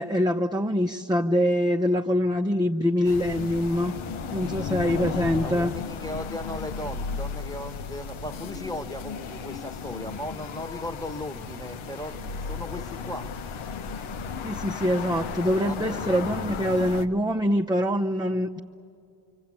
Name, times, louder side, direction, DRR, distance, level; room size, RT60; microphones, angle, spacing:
voice 1, 0.0-3.9 4.3-5.7 14.4-18.6, equal, 10° right, 2 dB, 0.8 m, -24 dB
sound 1, 3.0-17.1, left 6 dB, 70° left, 1.1 m, -34 dB
voice 2, 5.4-13.3 15.6-16.6, left 1 dB, 5° left, 9 dB, 1.4 m, -37 dB
25.5 x 24.5 x 8.7 m, 2.4 s
supercardioid pair, 50°, 49 cm